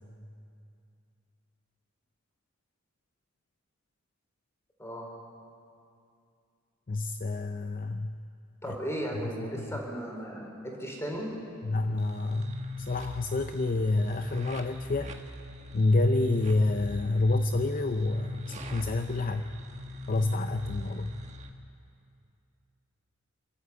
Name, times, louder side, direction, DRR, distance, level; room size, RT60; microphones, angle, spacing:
voice 1, 6.9-8.1 8.7-8.8 9.4-9.7 11.6-15.1 15.7-19.4 20.1-21.1, left 2 dB, 40° left, 8 dB, 0.5 m, -28 dB
voice 2, 8.6-11.3, equal, 15° left, -1 dB, 4.2 m, -36 dB
sound 1, 12.0-21.5, left 1 dB, 35° right, 1.5 m, -41 dB
27.5 x 13.0 x 8.6 m, 2.5 s
head